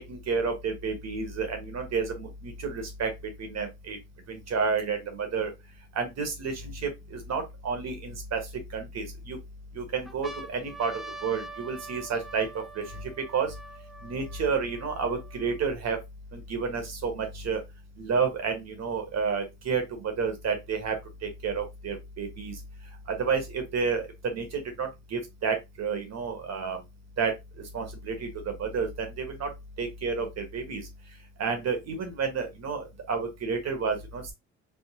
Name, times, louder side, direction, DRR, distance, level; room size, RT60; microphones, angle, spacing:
voice 1, 0.1-3.1 3.4-4.0 4.3-5.5 5.9-8.4 8.7-9.4 9.7-10.9 11.2-12.5 12.7-12.8 13.3-13.5 14.0-16.0 16.3-17.6 18.0-20.9 21.2-22.5 23.1-26.8 27.2-27.3 27.7-29.5 29.8-30.8 31.4-34.3, right 5 dB, 60° right, 1.2 m, -30 dB
sound 1, 5.7-5.8 6.5-7.8 8.5-9.2 9.7-9.8 10.1-15.7 16.4-16.5 16.7-17.7 18.6-19.6, right 2 dB, ahead, 0.4 m, -45 dB
3.5 x 2.0 x 2.8 m
cardioid pair, 90°, 30 cm